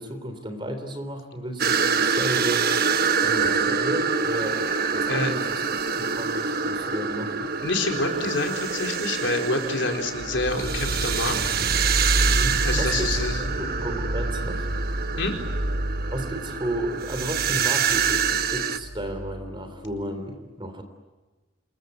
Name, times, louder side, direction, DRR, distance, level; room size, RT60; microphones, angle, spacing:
voice 1, 0.0-2.7 3.2-7.5 12.2-14.7 16.1-20.8, right 1 dB, 25° right, 7 dB, 3.4 m, -33 dB
sound 1, 1.6-18.8, right 6 dB, 45° right, 1.1 m, -26 dB
voice 2, 7.6-11.4 12.6-13.4 15.2-15.4, left 2 dB, 60° left, 3 dB, 4.2 m, -27 dB
sound 2, 10.1-20.0, right 1 dB, 80° right, 2.7 m, -30 dB
27.5 x 22.5 x 9.4 m, 1.2 s
head